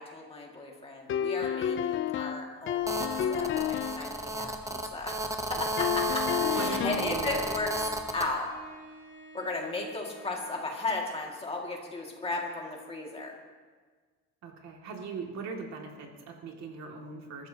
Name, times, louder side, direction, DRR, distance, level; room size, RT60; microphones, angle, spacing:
voice 1, 0.0-6.2 6.5-7.8 8.1-8.5 9.3-13.3, left 2 dB, 15° left, -1 dB, 2.0 m, -35 dB
sound 1, 1.1-4.1 5.8-7.2, left 10 dB, 40° left, 0.4 m, -30 dB
Telephone, 2.9-8.3, right 1 dB, 10° right, 0.8 m, -33 dB
voice 2, 5.6-6.0 6.5-7.4 14.4-17.5, right 5 dB, 55° right, 1 dB, 2.3 m, -40 dB
Bowed string instrument, 6.4-10.8, left 3 dB, 25° right, 4.8 m, -47 dB
22.5 x 13.5 x 2.8 m, 1.5 s
cardioid pair, 165°, 33 cm